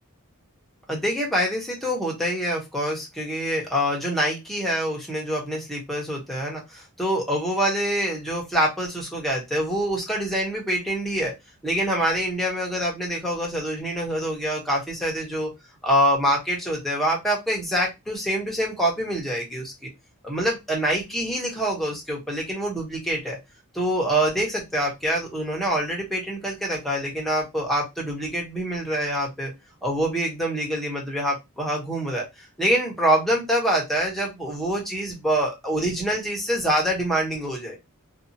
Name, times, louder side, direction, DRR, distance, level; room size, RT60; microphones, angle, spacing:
voice 1, 0.9-11.3 11.6-15.5 15.8-19.9 20.2-23.4 23.7-29.5 29.8-32.3 32.6-37.8, right 1 dB, ahead, -2 dB, 0.8 m, -25 dB
2.7 x 2.3 x 2.6 m, 0.21 s
head